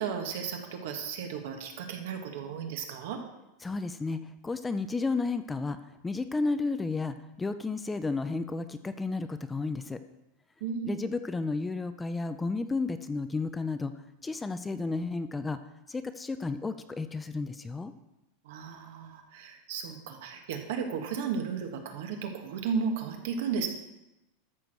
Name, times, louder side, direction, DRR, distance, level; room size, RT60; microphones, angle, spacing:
voice 1, 0.0-3.2 10.6-11.0 18.4-23.7, right 6 dB, 70° right, 4 dB, 1.6 m, -34 dB
voice 2, 3.6-5.8 6.0-10.0 10.9-13.9 14.2-15.6 15.9-17.9, left 3 dB, 10° left, 11 dB, 0.4 m, -32 dB
13.0 x 4.6 x 6.5 m, 0.95 s
supercardioid pair, 160°, 0 cm